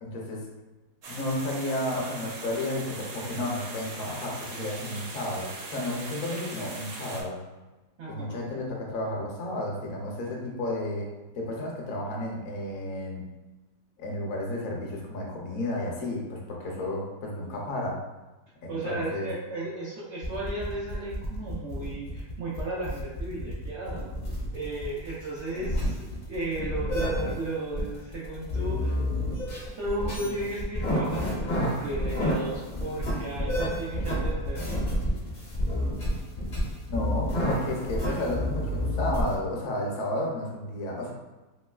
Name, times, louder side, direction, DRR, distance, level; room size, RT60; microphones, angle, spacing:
voice 1, 0.0-0.4 1.1-7.4 8.1-11.1 11.3-13.2 14.0-18.0 18.6-19.3 25.5-25.8 36.9-41.1, left 1 dB, 65° left, -2 dB, 0.9 m, -32 dB
sound 1, 1.0-7.2, right 3 dB, 90° right, 1.3 m, -40 dB
voice 2, 8.0-8.4 18.7-24.1 24.5-29.0 29.8-35.0 38.0-38.3, right 2 dB, 75° right, -6 dB, 0.6 m, -35 dB
sound 2, 20.2-39.4, left 1 dB, 45° left, 0.5 m, -30 dB
3.0 x 3.0 x 2.3 m, 1.1 s
omnidirectional pair, 1.8 m